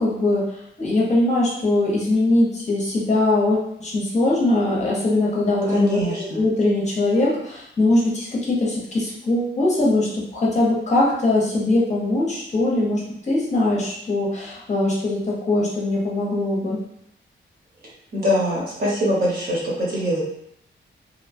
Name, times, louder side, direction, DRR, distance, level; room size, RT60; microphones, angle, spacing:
voice 1, 0.0-6.0 6.3-15.2 15.5-16.8, left 2 dB, 35° left, -4 dB, 0.6 m, -21 dB
voice 2, 5.7-6.4 18.1-20.2, equal, 50° right, -6 dB, 0.9 m, -23 dB
2.9 x 2.1 x 2.5 m, 0.73 s
wide cardioid pair, 175°, 20 cm